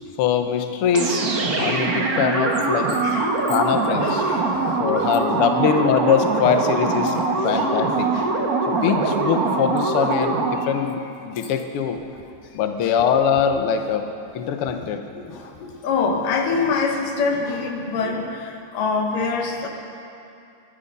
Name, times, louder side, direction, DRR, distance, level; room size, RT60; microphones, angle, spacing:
voice 1, 0.2-1.2 1.6-3.0 3.5-4.2 4.8-7.2 7.4-8.1 8.7-12.0 12.5-14.1 14.3-15.0, left 7 dB, 70° left, 6 dB, 1.4 m, -22 dB
sound 1, 0.9-10.8, right 3 dB, 55° right, 1.0 m, -23 dB
voice 2, 3.0-3.6 4.0-4.7 7.4-7.7 8.1-8.3 9.3-9.5 12.1-12.2 12.8-12.9 14.4-14.5 14.8-19.7, left 4 dB, 85° left, 3 dB, 3.0 m, -26 dB
22.0 x 11.0 x 5.5 m, 2.6 s
omnidirectional pair, 3.7 m